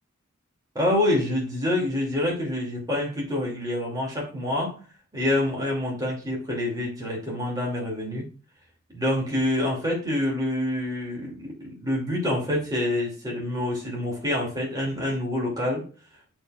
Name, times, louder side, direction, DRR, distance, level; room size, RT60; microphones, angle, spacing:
voice 1, 0.7-4.8 5.1-8.3 8.9-15.8, left 1 dB, 20° right, -3 dB, 2.6 m, -27 dB
10.5 x 4.5 x 2.4 m, 0.37 s
head